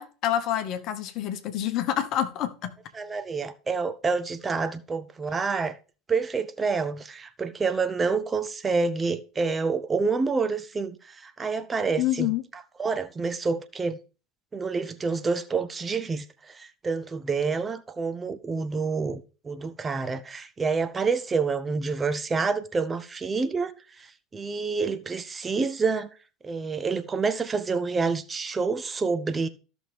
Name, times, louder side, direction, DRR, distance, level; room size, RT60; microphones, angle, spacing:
voice 1, 0.0-2.7 12.0-12.4, left 11 dB, 45° left, 1.1 m, -27 dB
voice 2, 2.9-5.7 6.1-12.3 12.8-14.0 14.5-23.7 24.0-24.1 24.3-26.1 26.4-29.5, right 4 dB, 20° right, 0.7 m, -28 dB
13.5 x 6.1 x 3.5 m
figure-of-eight pair, 70°, 0 cm